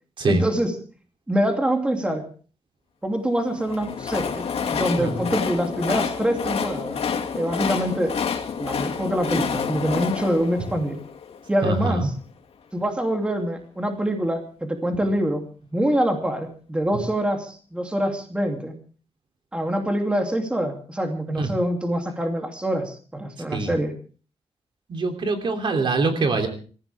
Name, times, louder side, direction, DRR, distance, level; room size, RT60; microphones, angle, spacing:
voice 1, 0.3-0.7 1.3-2.3 3.0-7.0 7.3-8.1 8.6-11.0 11.5-12.1 12.7-15.4 15.7-18.7 19.5-23.9, right 1 dB, 10° right, 3 dB, 2.8 m, -25 dB
Train, 3.5-11.7, left 6 dB, 65° left, 2.4 m, -28 dB
voice 2, 11.6-12.1 21.4-21.5 23.5-23.7 24.9-26.5, right 3 dB, 50° right, 4 dB, 3.1 m, -23 dB
26.0 x 15.5 x 3.5 m, 0.40 s
wide cardioid pair, 170°, 11 cm